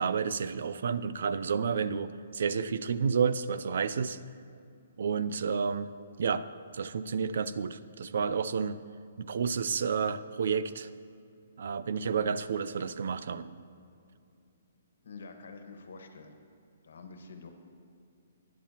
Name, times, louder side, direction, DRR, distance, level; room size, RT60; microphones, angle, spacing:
voice 1, 0.0-4.2 5.0-5.9 6.2-6.5 6.7-8.8 9.2-10.9 11.6-13.6, right 6 dB, 60° right, 14 dB, 0.4 m, -30 dB
voice 2, 15.0-16.4 16.8-17.5, left 4 dB, 75° left, 5 dB, 1.3 m, -47 dB
17.0 x 10.5 x 2.9 m, 2.4 s
hypercardioid pair, 170°, 0 cm